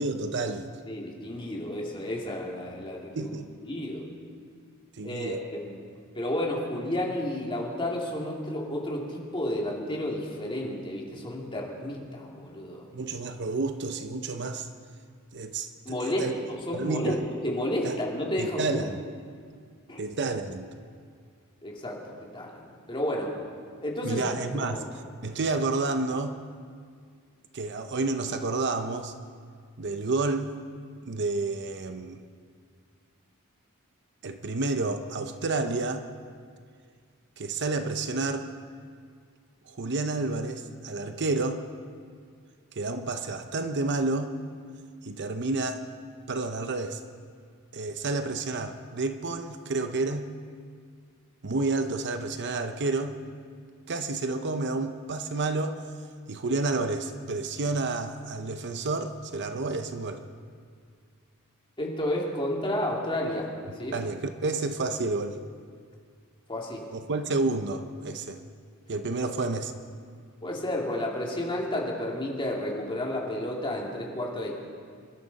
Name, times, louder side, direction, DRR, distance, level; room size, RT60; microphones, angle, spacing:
voice 1, 0.0-0.7 3.2-3.5 5.0-5.4 12.9-14.7 15.3-15.7 16.0-16.3 16.7-17.2 17.8-18.0 18.4-19.0 20.0-20.7 24.0-24.8 25.2-26.4 27.5-29.1 29.8-30.5 31.1-32.2 34.2-36.1 37.4-38.5 39.7-41.6 42.8-44.3 45.0-45.8 46.3-47.0 47.7-50.3 51.4-53.2 53.9-55.8 56.3-60.2 63.9-65.4 66.9-68.4 68.9-69.7, right 3 dB, 50° right, 8 dB, 0.8 m, -30 dB
voice 2, 0.9-3.3 3.7-4.1 5.0-5.8 6.1-12.9 15.8-18.8 19.9-20.0 21.6-23.4 23.8-24.3 24.6-24.8 61.8-64.0 66.5-66.9 70.4-74.5, left 1 dB, 25° left, -2 dB, 2.6 m, -31 dB
27.0 x 12.5 x 4.1 m, 2.1 s
head